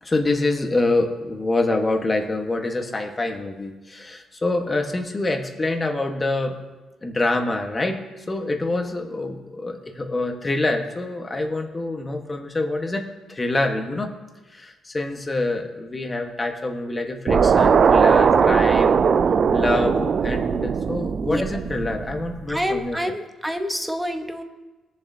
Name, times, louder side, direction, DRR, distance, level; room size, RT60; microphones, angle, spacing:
voice 1, 0.0-6.6 7.0-14.1 14.5-19.0 19.5-23.0, left 2 dB, 20° left, 4 dB, 1.3 m, -26 dB
sound 1, 17.3-22.5, right 6 dB, 45° right, 0.3 m, -19 dB
voice 2, 22.5-24.4, equal, 5° right, 6 dB, 1.0 m, -27 dB
21.5 x 7.2 x 2.8 m, 1.2 s
cardioid pair, 100°, 0 cm